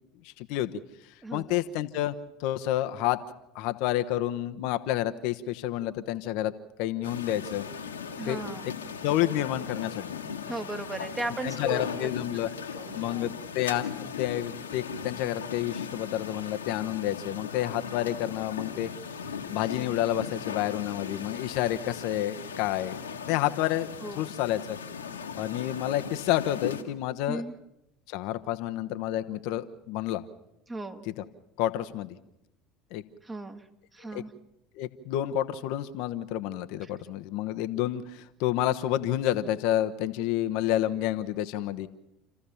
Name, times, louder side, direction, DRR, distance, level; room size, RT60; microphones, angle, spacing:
voice 1, 0.2-0.7 1.3-2.1 2.4-3.2 3.5-6.5 6.8-7.7 8.3-8.7 9.0-10.1 11.4-12.5 12.9-18.9 19.5-23.0 23.3-23.9 24.1-24.8 25.4-27.4 28.1-30.2 31.1-31.2 31.6-32.2 32.9-33.0 34.1-34.2 34.8-41.9, left 13 dB, 65° left, 9 dB, 1.0 m, -29 dB
voice 2, 1.2-1.6 8.2-8.7 10.5-12.1 12.5-13.3 24.0-24.3 27.3-27.5 30.7-31.1 33.2-33.6 33.9-34.3, right 2 dB, 20° right, 6 dB, 2.2 m, -37 dB
sound 1, 7.0-26.8, left 6 dB, 90° left, 1.7 m, -38 dB
29.5 x 14.5 x 7.1 m, 0.87 s
hypercardioid pair, 70°, 0 cm